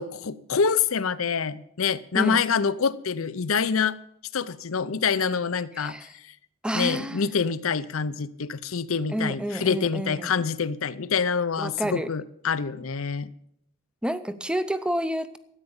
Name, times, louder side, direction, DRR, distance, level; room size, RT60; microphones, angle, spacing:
voice 1, 0.0-4.0 4.3-5.9 6.7-13.3, left 6 dB, 75° left, 15 dB, 0.7 m, -26 dB
voice 2, 2.1-2.4 5.8-6.1 6.6-7.3 9.1-10.3 11.6-12.1 14.0-15.4, equal, 5° right, 13 dB, 0.6 m, -29 dB
13.5 x 9.2 x 7.1 m, 0.74 s
head